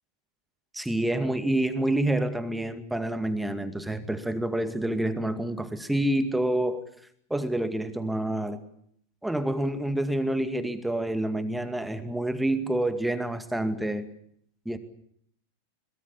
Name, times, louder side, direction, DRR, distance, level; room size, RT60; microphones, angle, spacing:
voice 1, 0.7-6.9 7.3-8.6 9.2-14.1 14.7-14.8, right 1 dB, 5° right, 10 dB, 2.2 m, -28 dB
22.5 x 21.5 x 8.5 m, 0.68 s
figure-of-eight pair, 90°, 0 cm